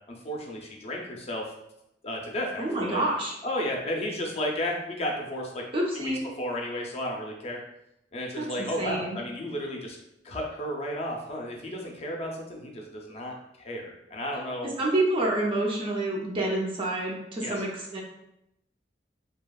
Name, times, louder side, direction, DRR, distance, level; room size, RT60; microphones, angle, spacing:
voice 1, 0.1-1.5 2.0-3.0 3.4-5.6 5.9-6.1 6.4-7.6 8.1-10.0 10.2-14.7 17.4-17.5, left 1 dB, 35° left, 0 dB, 0.5 m, -33 dB
voice 2, 2.6-3.3 5.7-6.2 8.3-8.4 8.8-9.2 14.6-18.0, right 1 dB, 30° right, -3 dB, 0.4 m, -28 dB
2.7 x 2.4 x 2.2 m, 0.83 s
head